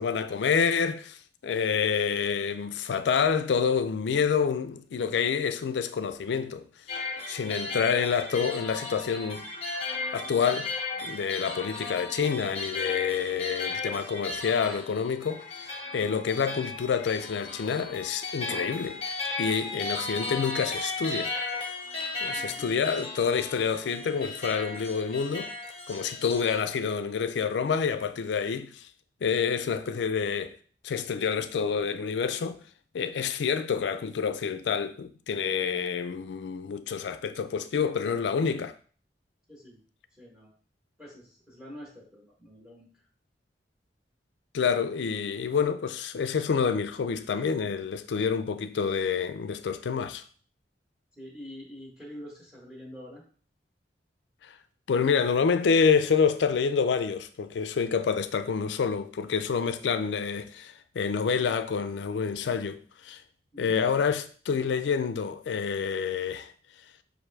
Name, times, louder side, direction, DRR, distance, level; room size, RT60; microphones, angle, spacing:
voice 1, 0.0-6.7 7.3-9.4 10.1-10.7 11.0-19.0 19.4-21.3 22.2-25.5 25.9-28.9 29.2-30.6 30.8-32.6 32.9-38.7 44.5-50.2 54.4-54.5 54.9-63.2 63.6-66.5, left 6 dB, 80° left, 0.4 m, -28 dB
sound 1, 6.9-26.6, left 3 dB, 35° left, 0.8 m, -35 dB
voice 2, 22.4-22.7 39.5-39.8 40.2-40.5 41.0-42.9 51.2-53.2 63.5-63.8, equal, 5° right, 1.0 m, -46 dB
5.9 x 2.6 x 3.2 m
head